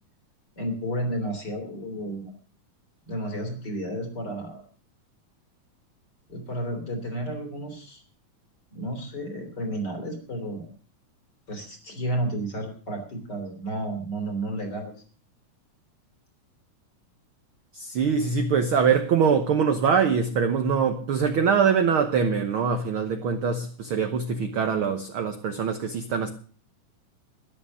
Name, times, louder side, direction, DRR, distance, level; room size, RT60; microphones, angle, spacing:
voice 1, 0.6-2.3 3.1-4.6 6.3-8.0 8.7-10.7 11.5-14.9, right 1 dB, 35° left, 3.4 m, -32 dB
voice 2, 17.7-26.3, right 6 dB, 60° right, 1.4 m, -23 dB
13.0 x 11.0 x 6.3 m
omnidirectional pair, 3.6 m